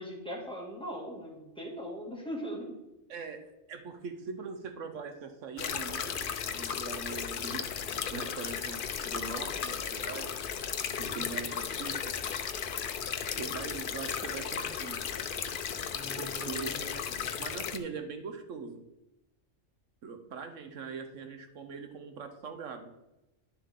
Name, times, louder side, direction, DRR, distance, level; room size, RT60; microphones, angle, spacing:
voice 1, 0.0-2.7 11.0-11.3 15.9-17.4, equal, 5° left, -4 dB, 2.2 m, -41 dB
voice 2, 3.1-10.3 11.0-12.0 13.4-15.1 16.2-16.7 17.4-18.8 20.0-22.9, right 5 dB, 75° right, 6 dB, 1.2 m, -42 dB
sound 1, 5.6-17.8, left 7 dB, 55° left, 0.7 m, -35 dB
11.0 x 7.0 x 3.7 m, 0.96 s
omnidirectional pair, 1.3 m